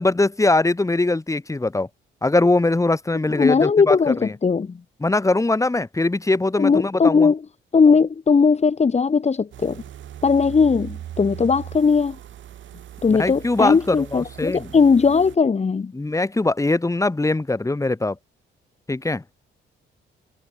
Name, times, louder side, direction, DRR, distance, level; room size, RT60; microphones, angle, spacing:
voice 1, 0.0-1.9 2.2-4.3 5.0-7.3 13.1-14.7 15.9-18.2 18.9-19.2, left 2 dB, 15° left, 4.5 m, -21 dB
voice 2, 3.3-4.8 6.6-7.4 7.7-9.8 10.2-12.2 13.0-15.9, left 5 dB, 35° left, 2.8 m, -18 dB
sound 1, 9.5-15.4, right 11 dB, 75° right, 6.7 m, -39 dB
cardioid pair, 90°, 20 cm